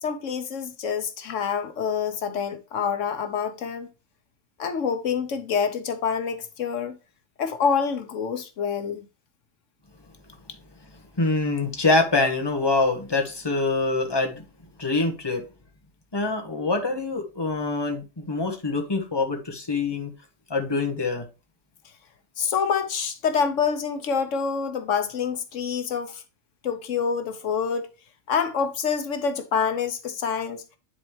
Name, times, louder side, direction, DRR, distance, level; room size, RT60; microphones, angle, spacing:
voice 1, 0.0-3.9 4.6-7.0 7.4-9.0 22.4-26.2 26.6-27.9 28.3-30.6, left 6 dB, 80° left, 1.3 m, -26 dB
voice 2, 11.2-14.4 14.8-15.4 16.1-20.1 20.5-21.2, left 3 dB, 20° left, 1.4 m, -25 dB
10.0 x 4.2 x 3.1 m
omnidirectional pair, 1.3 m